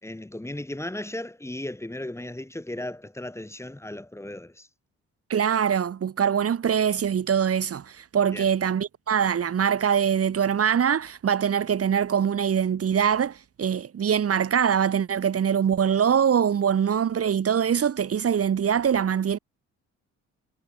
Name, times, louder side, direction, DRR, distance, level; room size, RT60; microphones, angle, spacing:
voice 1, 0.0-4.7 8.3-8.5, left 1 dB, 10° left, 3.4 m, -36 dB
voice 2, 5.3-19.4, right 8 dB, 50° right, 2.7 m, -23 dB
cardioid pair, 90°, 30 cm